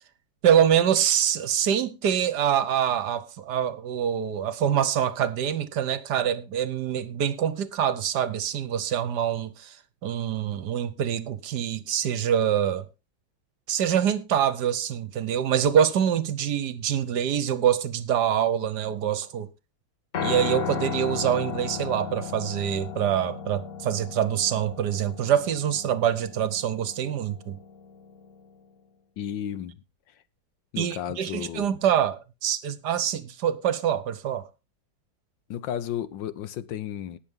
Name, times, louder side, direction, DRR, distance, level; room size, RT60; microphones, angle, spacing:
voice 1, 0.4-9.8 10.0-12.9 13.7-19.5 20.2-27.6 30.8-34.5, right 9 dB, 65° right, 1.4 m, -25 dB
Piano, 20.1-28.4, left 8 dB, 45° left, 1.3 m, -35 dB
voice 2, 29.2-29.8 30.7-31.7 35.5-37.2, left 10 dB, 75° left, 1.5 m, -33 dB
19.0 x 7.1 x 3.6 m
omnidirectional pair, 2.1 m